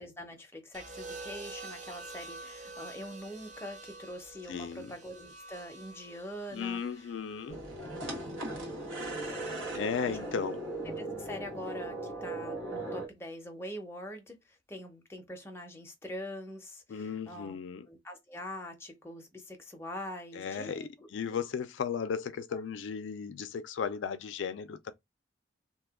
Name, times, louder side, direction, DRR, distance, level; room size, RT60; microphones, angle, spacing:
voice 1, 0.0-7.1 7.8-8.5 10.1-10.3 10.9-17.6 17.9-21.1 22.5-22.6, equal, 15° left, 0.6 m, -44 dB
sound 1, 0.7-8.9 10.1-10.5, right 3 dB, 40° right, 0.8 m, -48 dB
voice 2, 4.5-4.9 6.5-7.6 9.7-10.6 16.9-17.9 20.3-24.9, left 6 dB, 70° left, 0.3 m, -35 dB
sound 2, 7.5-13.1, right 2 dB, 90° right, 1.5 m, -38 dB
2.8 x 2.2 x 3.4 m
head